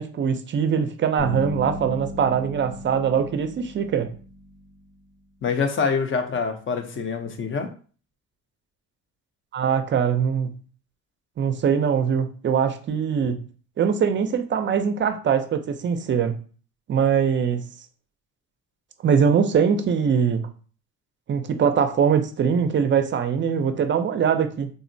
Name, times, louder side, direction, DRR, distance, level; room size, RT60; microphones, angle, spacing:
voice 1, 0.0-4.1 9.5-10.5 11.4-13.4 13.8-16.3 16.9-17.7 19.0-20.5 21.3-24.7, right 7 dB, 40° right, 9 dB, 0.4 m, -22 dB
Bass guitar, 1.2-5.0, left 1 dB, 65° left, 1.0 m, -35 dB
voice 2, 5.4-7.7, left 5 dB, 40° left, 7 dB, 0.6 m, -25 dB
3.6 x 2.0 x 2.6 m, 0.40 s
cardioid pair, 90°, 30 cm